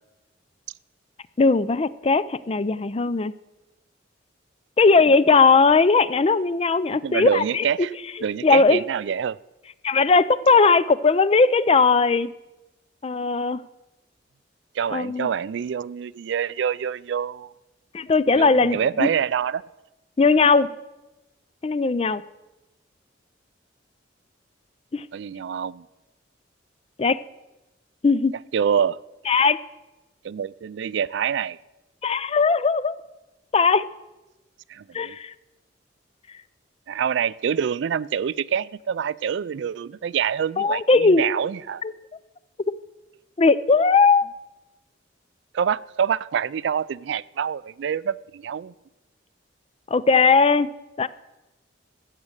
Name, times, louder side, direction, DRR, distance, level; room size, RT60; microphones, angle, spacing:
voice 1, 1.4-3.3 4.8-7.6 8.4-8.8 9.8-12.3 13.0-13.6 14.9-15.3 17.9-19.1 20.2-20.7 21.6-22.2 24.9-25.0 27.0-27.2 28.0-28.4 29.3-29.6 32.0-33.0 33.5-33.9 34.9-35.3 40.6-41.4 41.8-41.9 42.7-42.8 43.4-44.3 49.9-50.7 51.0-51.1, left 4 dB, 30° left, 17 dB, 0.4 m, -18 dB
voice 2, 7.0-7.9 8.2-9.4 14.8-17.5 18.3-19.6 25.1-25.9 28.5-29.0 30.2-31.6 34.7-35.2 36.9-41.8 45.5-48.7, right 8 dB, 70° right, 20 dB, 0.3 m, -26 dB
14.0 x 8.4 x 6.4 m, 1.0 s
head